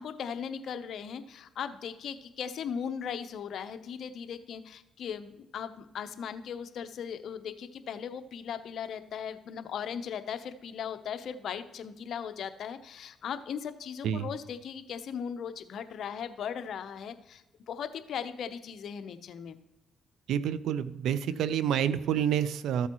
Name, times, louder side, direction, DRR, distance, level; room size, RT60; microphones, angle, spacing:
voice 1, 0.0-19.6, left 7 dB, 65° left, 10 dB, 0.7 m, -38 dB
voice 2, 20.3-22.9, right 9 dB, 80° right, 15 dB, 0.5 m, -28 dB
14.0 x 8.0 x 3.0 m, 0.99 s
cardioid pair, 90°, 0 cm